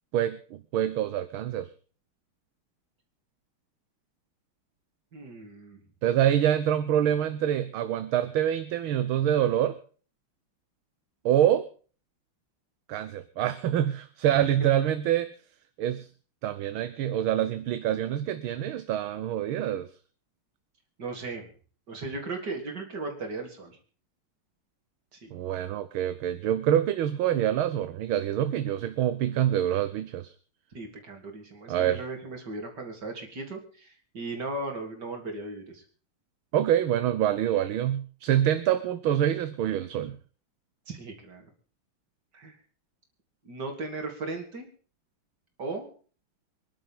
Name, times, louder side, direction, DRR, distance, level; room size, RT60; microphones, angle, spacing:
voice 1, 0.1-1.7 6.0-9.8 11.3-11.7 12.9-15.3 15.8-16.1 16.4-19.9 25.3-30.3 31.7-32.0 36.5-40.2, right 11 dB, 75° right, 12 dB, 1.7 m, -26 dB
voice 2, 5.1-5.8 14.6-14.7 21.0-21.5 21.9-23.8 25.1-25.3 30.7-35.8 40.9-41.4 42.3-42.5 43.4-44.7 45.6-45.9, right 3 dB, 50° right, 3 dB, 4.0 m, -37 dB
25.0 x 11.5 x 3.8 m, 0.39 s
omnidirectional pair, 2.3 m